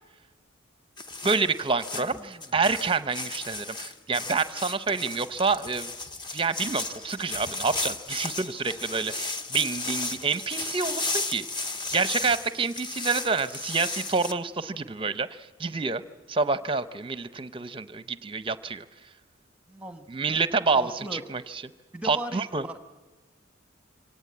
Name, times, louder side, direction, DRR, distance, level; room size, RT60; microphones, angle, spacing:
sound 1, 1.0-14.3, left 3 dB, 25° left, 0.8 m, -34 dB
voice 1, 1.2-5.9 6.3-11.4 11.9-16.0 16.3-18.8 20.1-21.6 22.0-22.7, right 4 dB, 25° right, 13 dB, 0.6 m, -28 dB
voice 2, 1.9-2.4 19.7-20.5 20.7-21.2 21.9-22.8, right 1 dB, 5° right, 7 dB, 1.1 m, -39 dB
24.5 x 17.5 x 8.7 m, 1.3 s
head